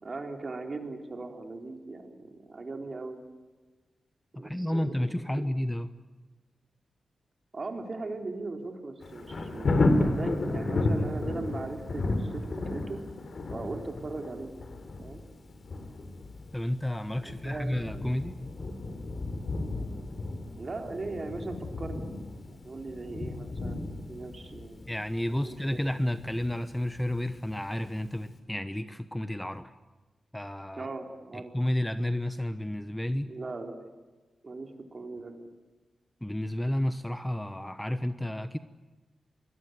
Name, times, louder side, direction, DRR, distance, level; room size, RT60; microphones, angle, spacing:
voice 1, 0.0-3.2 4.3-5.4 7.5-13.0 13.5-14.5 15.0-15.2 17.2-18.0 20.6-22.1 22.5-24.8 25.4-25.6 30.8-31.5 33.3-33.8 34.4-35.5, right 3 dB, 40° right, 4 dB, 3.9 m, -39 dB
voice 2, 4.3-5.9 16.5-18.4 24.9-29.7 30.3-30.9 31.3-33.3 36.2-38.6, left 1 dB, 10° left, 12 dB, 1.0 m, -31 dB
Thunder, 9.0-27.8 28.2-28.3, left 2 dB, 55° left, 4.0 m, -33 dB
26.5 x 21.0 x 9.4 m, 1.3 s
cardioid pair, 80°, 0 cm